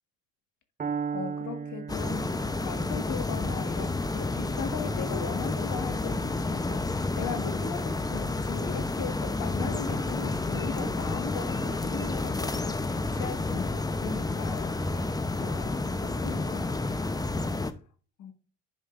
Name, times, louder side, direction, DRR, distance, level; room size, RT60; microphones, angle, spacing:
Piano, 0.8-8.7, right 6 dB, 25° right, 0.6 m, -40 dB
voice 1, 1.1-17.0 18.2-18.3, left 6 dB, 65° left, 1.7 m, -38 dB
sound 1, 1.9-17.7, left 2 dB, 10° left, 0.7 m, -30 dB
9.9 x 5.4 x 2.5 m
cardioid pair, 90°, 32 cm